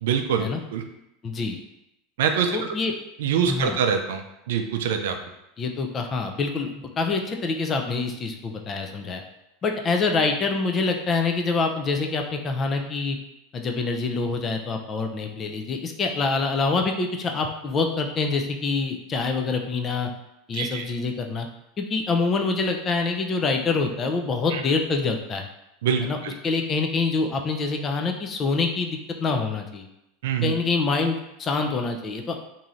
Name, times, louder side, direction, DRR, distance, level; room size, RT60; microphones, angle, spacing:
voice 1, 0.0-0.4 0.7-0.8 2.2-2.7 3.2-5.2 20.5-20.8 24.5-24.6 25.8-26.3 30.2-30.5, right 7 dB, 90° right, 5 dB, 0.3 m, -24 dB
voice 2, 1.2-1.6 2.5-2.9 3.5-3.8 5.6-9.2 9.6-13.2 13.5-20.1 20.5-21.5 21.8-25.5 26.0-26.2 26.4-29.9 30.4-32.4, left 4 dB, 25° left, 4 dB, 0.3 m, -26 dB
3.0 x 2.6 x 2.4 m, 0.86 s
supercardioid pair, 155°, 0 cm